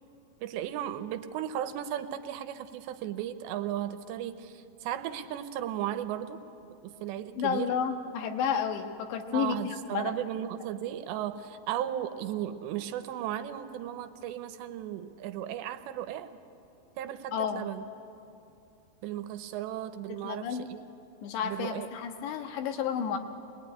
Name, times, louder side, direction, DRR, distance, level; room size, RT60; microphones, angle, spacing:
voice 1, 0.4-6.4 6.7-7.8 9.3-16.4 17.0-17.8 19.0-20.8 21.4-21.9, right 11 dB, 85° right, 9 dB, 3.1 m, -35 dB
voice 2, 7.4-10.1 17.3-17.7 20.2-20.7 21.2-23.2, left 7 dB, 85° left, 5 dB, 3.6 m, -31 dB
25.0 x 20.5 x 9.8 m, 2.7 s
omnidirectional pair, 5.0 m